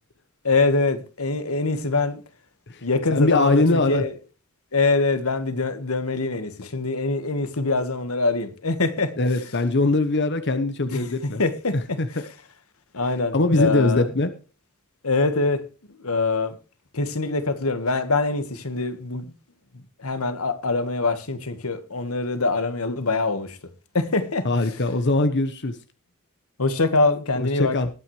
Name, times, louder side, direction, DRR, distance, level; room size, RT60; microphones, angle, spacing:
voice 1, 0.4-2.2 2.8-4.1 4.7-9.1 10.9-11.0 11.4-12.0 12.9-14.0 15.0-15.6 16.0-16.6 16.9-19.2 20.0-23.6 23.9-24.5 26.6-27.7, left 3 dB, 85° left, 1.6 m, -24 dB
voice 2, 3.1-4.0 9.2-11.4 11.7-12.1 13.3-14.3 24.4-25.8 27.4-27.9, left 2 dB, 55° left, 1.1 m, -21 dB
20.5 x 9.1 x 3.2 m
head